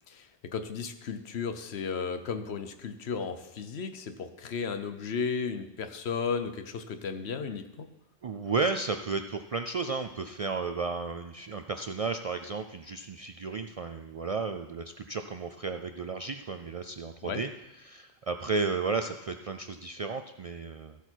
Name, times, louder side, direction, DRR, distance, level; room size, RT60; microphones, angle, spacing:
voice 1, 0.1-7.9 17.2-17.4, left 5 dB, 75° left, 9 dB, 1.1 m, -34 dB
voice 2, 8.2-17.5 17.8-21.0, right 4 dB, 55° right, 7 dB, 0.4 m, -33 dB
14.5 x 8.2 x 4.5 m, 1.0 s
omnidirectional pair, 1.1 m